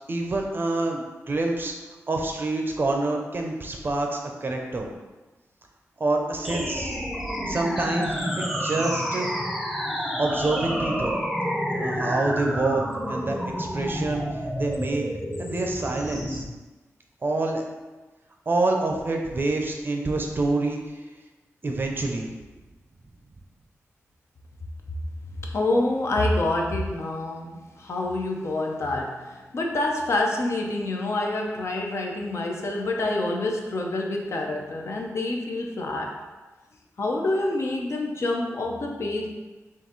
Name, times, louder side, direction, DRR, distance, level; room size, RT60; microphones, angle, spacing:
voice 1, 0.1-1.7 2.1-4.9 6.0-6.9 7.5-9.3 10.2-11.2 11.7-12.8 13.1-14.2 14.6-15.0 15.4-16.4 17.2-17.6 18.5-20.8 21.6-22.3, right 2 dB, 40° right, 1 dB, 0.6 m, -27 dB
sound 1, 6.4-16.4, equal, ahead, 0.6 m, -29 dB
voice 2, 25.4-36.2 37.0-39.3, left 2 dB, 60° left, 0 dB, 0.6 m, -27 dB
3.8 x 2.6 x 3.9 m, 1.2 s
wide cardioid pair, 80°, 5 cm